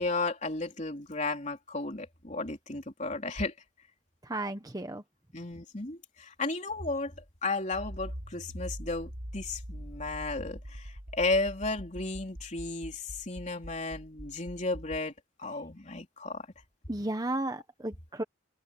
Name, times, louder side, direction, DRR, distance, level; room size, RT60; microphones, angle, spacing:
voice 1, 0.0-3.5 5.3-7.1 7.4-15.1 15.4-16.5, left 3 dB, 35° left, 3.7 m, -34 dB
voice 2, 4.2-5.0 16.9-18.2, right 1 dB, 20° right, 1.2 m, -34 dB
Accelerating revving vroom, 7.7-15.0, equal, 60° right, 5.8 m, -43 dB
head